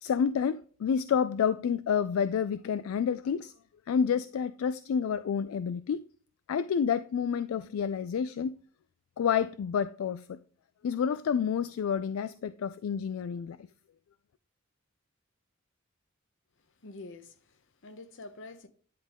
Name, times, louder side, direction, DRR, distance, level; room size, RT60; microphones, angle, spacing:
voice 1, 0.0-3.5 3.9-6.0 6.5-8.6 9.2-10.4 10.8-13.6, left 7 dB, 80° left, 0.3 m, -29 dB
voice 2, 16.6-18.7, left 2 dB, 65° left, 0.9 m, -47 dB
10.5 x 3.6 x 3.5 m
head